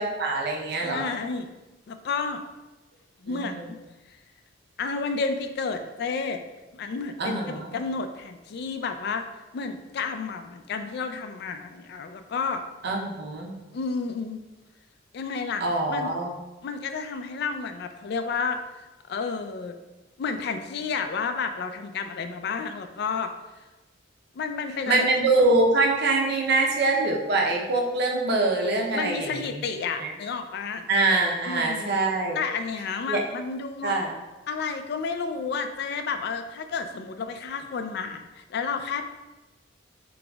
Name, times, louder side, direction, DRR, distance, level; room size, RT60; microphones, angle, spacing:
voice 1, 0.0-1.1 3.3-3.7 7.2-7.7 12.8-13.5 15.6-16.3 24.9-29.6 30.0-30.1 30.9-32.4 33.1-33.2 33.8-34.1, right 2 dB, 55° right, 0 dB, 0.6 m, -24 dB
voice 2, 0.7-1.5 1.9-2.4 3.2-3.8 4.8-6.4 6.7-9.2 9.5-12.6 13.7-14.4 15.1-15.6 15.9-16.1 16.6-19.8 20.2-23.3 24.3-25.0 28.9-30.9 31.4-31.9 32.3-33.9 34.5-39.1, left 5 dB, 55° left, 8 dB, 0.3 m, -31 dB
3.9 x 3.8 x 2.3 m, 1.1 s
head